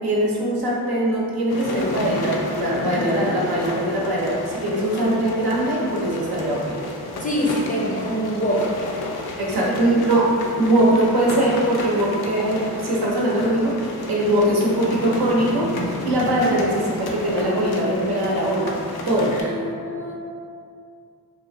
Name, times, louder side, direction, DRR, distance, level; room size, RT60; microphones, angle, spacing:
voice 1, 0.0-6.8 9.4-10.3 10.6-18.7 19.1-19.4, right 1 dB, 65° right, -5 dB, 0.8 m, -21 dB
sound 1, 1.5-19.4, left 2 dB, 65° left, 0.5 m, -32 dB
voice 2, 7.2-8.7 19.3-20.2, equal, 20° left, -4 dB, 0.5 m, -25 dB
2.7 x 2.4 x 2.6 m, 2.4 s
cardioid pair, 40°, 41 cm